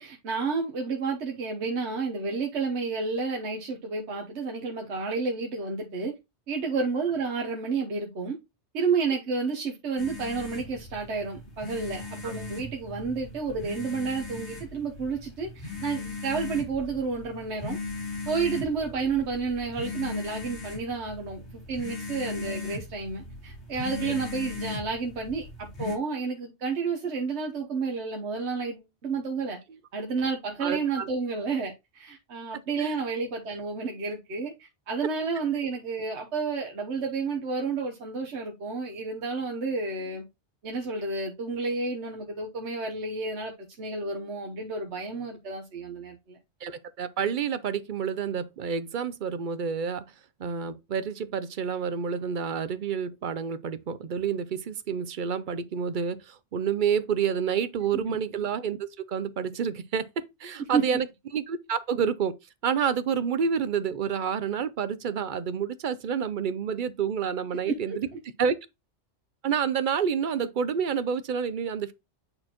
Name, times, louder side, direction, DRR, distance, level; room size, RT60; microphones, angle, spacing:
voice 1, 0.0-6.1 6.5-8.4 8.7-17.8 18.3-25.5 25.8-29.6 29.9-40.2 40.6-43.5 43.8-46.4 60.7-60.8 67.7-68.0, right 4 dB, 70° right, 1.3 m, -31 dB
sound 1, 10.0-26.0, left 3 dB, 70° left, 2.2 m, -38 dB
voice 2, 30.6-31.1 32.8-33.0 46.6-50.0 50.4-60.1 60.4-61.1 61.3-62.3 62.6-68.1 68.4-68.6 69.4-71.9, right 7 dB, 55° right, 0.6 m, -29 dB
8.7 x 4.2 x 2.9 m
omnidirectional pair, 1.2 m